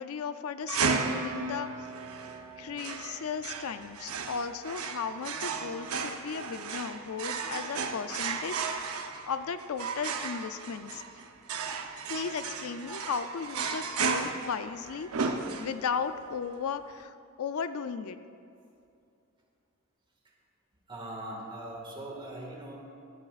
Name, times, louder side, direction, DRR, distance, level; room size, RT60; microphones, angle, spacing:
voice 1, 0.0-1.7 2.6-8.9 9.3-11.0 12.1-18.2, left 6 dB, 85° left, 11 dB, 0.4 m, -36 dB
sound 1, 0.7-16.0, right 5 dB, 85° right, 0.7 m, -34 dB
voice 2, 20.9-22.8, right 1 dB, 25° right, -1 dB, 1.8 m, -40 dB
13.0 x 13.0 x 2.5 m, 2.6 s
head